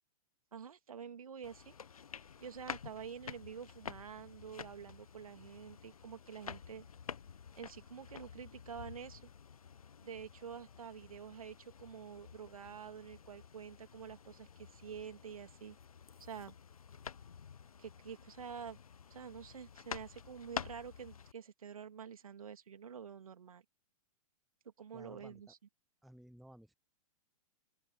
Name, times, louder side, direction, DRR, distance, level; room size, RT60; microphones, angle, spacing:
voice 1, 0.5-1.7 2.1-6.9 7.6-9.3 10.0-15.8 16.2-16.5 17.8-18.8 19.1-23.6 24.8-25.6, right 7 dB, 65° right, 2.6 m, -48 dB
sound 1, 1.4-21.3, left 7 dB, 70° left, 1.3 m, -50 dB
voice 2, 24.9-25.4 26.0-26.7, equal, ahead, 0.5 m, -56 dB
open air
figure-of-eight pair, 105°, 19 cm